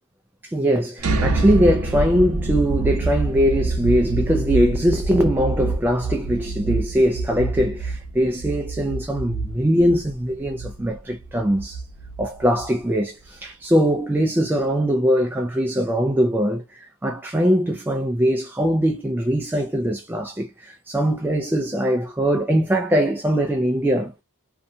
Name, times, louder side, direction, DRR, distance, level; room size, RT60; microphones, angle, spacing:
voice 1, 0.4-11.8 12.2-24.1, equal, 10° right, 0.3 m, -21 dB
sound 1, 1.0-12.8, right 3 dB, 70° right, 0.6 m, -26 dB
2.7 x 2.3 x 2.6 m
head